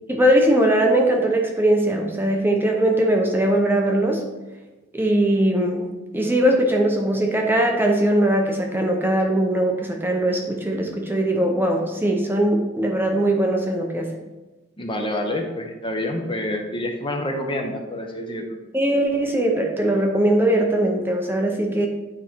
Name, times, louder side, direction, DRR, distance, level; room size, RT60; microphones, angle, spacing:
voice 1, 0.1-4.2 4.9-14.1 18.7-21.9, right 1 dB, 10° right, 1 dB, 0.6 m, -20 dB
voice 2, 14.8-18.6, left 1 dB, 25° left, 3 dB, 0.8 m, -27 dB
9.4 x 3.2 x 4.4 m, 1.1 s
head